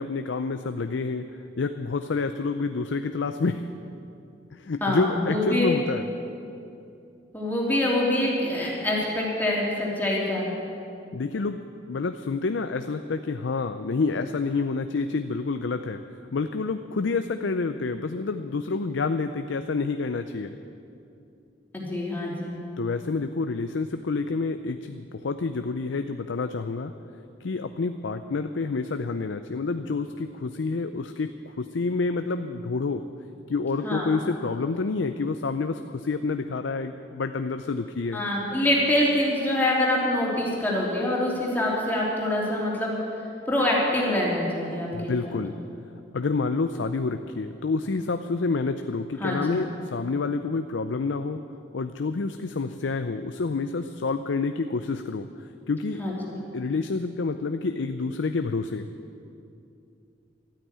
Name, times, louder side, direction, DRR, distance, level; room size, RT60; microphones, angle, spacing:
voice 1, 0.0-3.6 4.5-6.0 11.1-11.6 11.9-16.0 16.3-20.5 22.8-26.9 27.4-31.3 31.6-33.0 33.5-38.2 44.9-45.6 46.1-51.4 51.7-55.3 55.7-56.0 56.5-58.9, left 4 dB, 90° left, 8 dB, 0.5 m, -28 dB
voice 2, 4.8-5.7 7.3-10.5 21.7-22.6 33.8-34.1 38.1-42.9 43.5-45.2 49.2-49.6 56.0-56.1, left 1 dB, 10° left, -4 dB, 3.0 m, -25 dB
13.0 x 9.1 x 9.6 m, 2.6 s
head